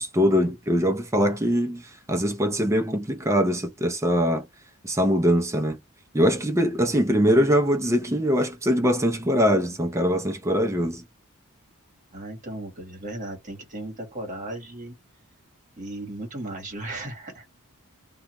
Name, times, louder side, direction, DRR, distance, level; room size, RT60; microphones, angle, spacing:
voice 1, 0.0-1.8 2.1-4.4 4.8-5.8 6.1-11.0, equal, 15° right, 0.5 m, -22 dB
voice 2, 12.1-14.9 15.8-17.5, right 1 dB, 35° right, 1.3 m, -36 dB
2.5 x 2.2 x 2.9 m
head